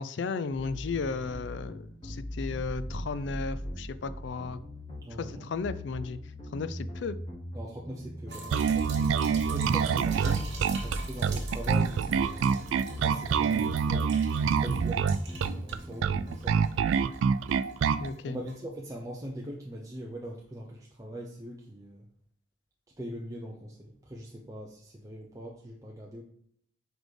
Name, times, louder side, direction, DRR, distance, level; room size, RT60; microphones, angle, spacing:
voice 1, 0.0-4.6 5.2-6.2 6.5-7.2 18.0-18.4, left 4 dB, 65° left, 14 dB, 0.4 m, -34 dB
sound 1, 0.5-16.5, equal, 25° left, 1.1 m, -40 dB
voice 2, 5.0-5.4 7.5-10.5 10.8-12.5 12.9-15.1 15.3-16.6 18.2-22.1 23.0-26.2, equal, 15° right, -2 dB, 0.6 m, -41 dB
sound 2, 8.3-16.0 16.3-17.8 18.0-18.2 18.5-18.6, right 4 dB, 60° right, 1.3 m, -45 dB
Bass guitar, 8.5-18.1, right 6 dB, 85° right, 0.3 m, -26 dB
4.9 x 4.1 x 4.7 m, 0.65 s
head